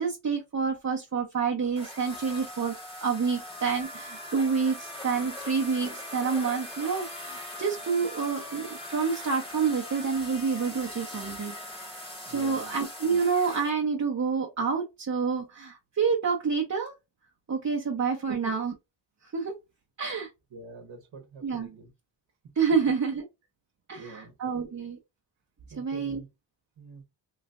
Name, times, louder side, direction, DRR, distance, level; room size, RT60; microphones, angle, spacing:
voice 1, 0.0-2.7 3.0-11.6 11.9-12.0 12.2-16.9 17.5-18.7 19.3-19.5 20.0-20.3 21.4-21.7 22.6-23.3 23.9-25.0 25.8-26.2, right 5 dB, 40° right, 0.8 m, -28 dB
sound 1, 1.8-13.7, left 1 dB, 10° left, 1.2 m, -41 dB
voice 2, 12.2-12.7 18.3-18.5 20.5-21.9 23.9-24.6 25.7-26.3 26.8-27.0, right 4 dB, 75° right, 1.1 m, -44 dB
3.1 x 3.1 x 2.5 m
cardioid pair, 75°, 46 cm